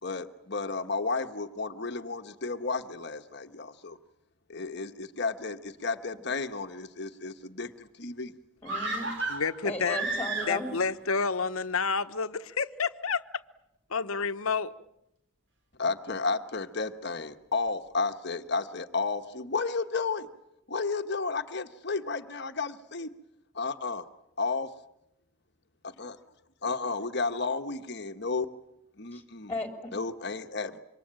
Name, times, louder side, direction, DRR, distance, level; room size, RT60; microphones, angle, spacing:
voice 1, 0.0-4.0 4.5-8.3 15.8-20.3 20.7-23.1 23.5-24.1 24.4-24.7 26.0-26.2 26.6-28.5 29.0-29.5 29.9-30.8, left 4 dB, 55° left, 1.2 m, -32 dB
voice 2, 8.6-9.1 9.6-10.7 29.1-29.2 29.5-29.9, left 2 dB, 10° left, 3.5 m, -35 dB
sound 1, 8.6-10.9 11.2-11.3, right 3 dB, 55° right, 4.6 m, -33 dB
voice 3, 9.3-10.0 10.5-13.2 13.9-14.7, left 5 dB, 85° left, 1.1 m, -29 dB
27.0 x 24.0 x 8.9 m
head